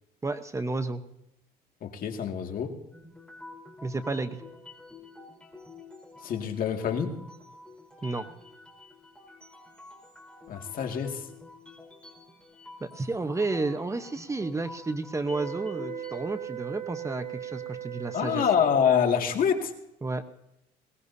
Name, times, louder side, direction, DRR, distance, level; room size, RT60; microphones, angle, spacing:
voice 1, 0.2-1.0 3.8-4.4 8.0-8.3 12.8-18.4 20.0-20.2, right 3 dB, 15° right, 9 dB, 0.9 m, -31 dB
voice 2, 1.8-2.8 6.2-7.1 10.5-11.3 18.1-19.7, left 7 dB, 55° left, 4 dB, 2.1 m, -26 dB
sound 1, 2.9-16.2, left 3 dB, 5° left, 3.9 m, -48 dB
sound 2, 15.3-19.2, right 12 dB, 60° right, 4.1 m, -38 dB
21.0 x 18.5 x 2.7 m, 0.83 s
cardioid pair, 110°, 17 cm